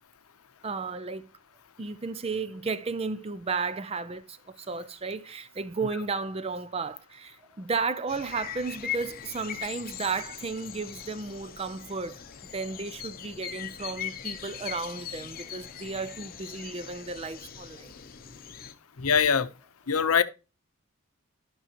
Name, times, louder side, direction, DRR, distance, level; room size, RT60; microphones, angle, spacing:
voice 1, 0.6-1.3 1.8-12.2 12.5-17.9, right 4 dB, 25° right, 0.4 m, -33 dB
sound 1, 8.1-18.7, left 9 dB, 40° left, 0.7 m, -40 dB
voice 2, 19.0-19.5 19.9-20.2, left 6 dB, 80° left, 0.7 m, -22 dB
12.5 x 6.1 x 2.9 m
head